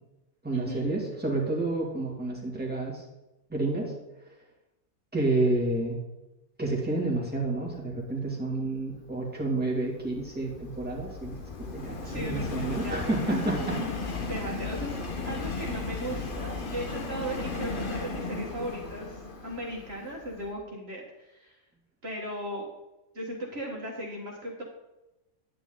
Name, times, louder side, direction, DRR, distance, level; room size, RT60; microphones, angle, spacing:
voice 1, 0.4-3.0 3.5-3.9 5.1-6.0 6.6-13.8, right 2 dB, 5° right, -3 dB, 2.3 m, -29 dB
Subway metro underground, 9.2-20.5, left 3 dB, 40° left, 1.2 m, -35 dB
voice 2, 12.0-13.6 14.2-21.6 22.0-22.7 23.1-24.6, right 1 dB, 45° right, -2 dB, 1.9 m, -37 dB
10.5 x 9.0 x 3.8 m, 0.98 s
omnidirectional pair, 1.5 m